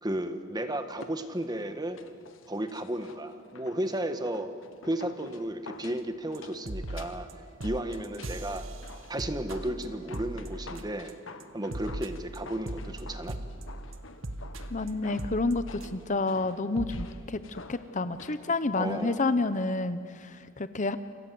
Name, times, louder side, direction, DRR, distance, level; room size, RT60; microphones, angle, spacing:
voice 1, 0.0-2.0 2.5-4.5 4.8-7.3 7.6-8.7 9.1-11.1 11.5-13.4 18.8-19.2, right 1 dB, 20° right, 8 dB, 1.7 m, -33 dB
sound 1, 0.9-19.7 20.0-20.1, left 3 dB, 80° left, 1.6 m, -50 dB
sound 2, 6.3-6.4 6.7-7.3 7.6-11.1 11.4-16.2 16.5-16.6 16.8-17.1, right 1 dB, 85° right, 1.6 m, -39 dB
voice 2, 14.7-21.0, left 3 dB, 40° left, 12 dB, 0.9 m, -29 dB
29.0 x 26.0 x 7.8 m, 2.2 s
head